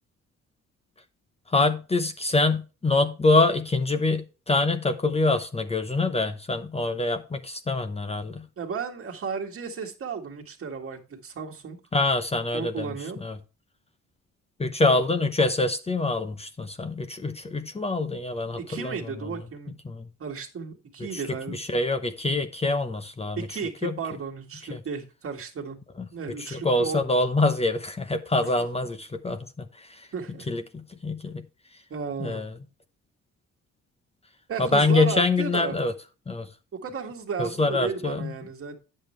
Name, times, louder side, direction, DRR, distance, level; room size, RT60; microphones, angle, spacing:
voice 1, 1.5-8.4 11.9-12.8 13.2-13.3 14.6-18.9 19.9-20.0 21.5-23.4 23.8-23.9 26.5-29.4 30.5-31.4 32.2-32.5 34.6-35.9 36.3-36.5 37.4-38.3, left 2 dB, 20° left, 0.8 m, -25 dB
voice 2, 8.6-11.8 12.5-13.2 14.9-15.0 18.6-19.8 20.2-21.6 23.4-25.8 26.1-27.2 28.4-28.7 30.1-30.5 31.9-32.4 34.5-35.8 36.7-38.8, right 5 dB, 45° right, 1.9 m, -34 dB
8.8 x 7.7 x 3.2 m
cardioid pair, 90°, 30 cm